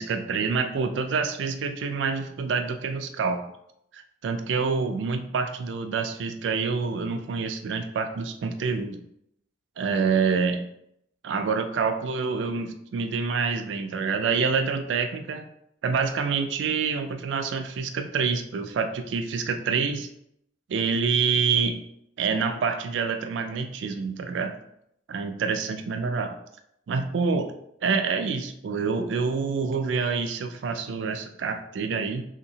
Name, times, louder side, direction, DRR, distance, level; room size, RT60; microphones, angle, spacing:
voice 1, 0.0-3.4 3.9-9.0 9.8-10.7 11.2-15.4 15.8-20.1 20.7-21.8 22.2-24.5 25.1-26.4 26.9-27.5 27.8-32.2, right 5 dB, 90° right, 7 dB, 0.4 m, -27 dB
3.4 x 2.8 x 2.7 m, 0.76 s
head